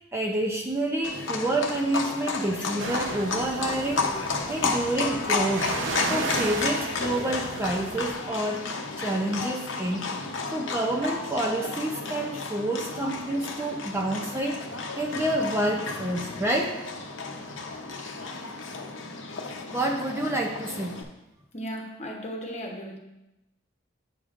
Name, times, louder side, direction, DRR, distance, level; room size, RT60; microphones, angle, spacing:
voice 1, 0.1-4.1 4.5-5.7 6.1-8.7 9.0-10.1 10.5-16.8 19.7-21.0, right 1 dB, 15° right, 0 dB, 0.5 m, -28 dB
Livestock farm animals working animals, 1.0-21.0, left 3 dB, 75° left, 0.8 m, -32 dB
sound 1, 2.8-8.1, right 2 dB, 70° right, 0.8 m, -34 dB
voice 2, 21.5-23.0, equal, 35° left, 1 dB, 1.0 m, -36 dB
9.3 x 6.6 x 2.5 m, 0.93 s
head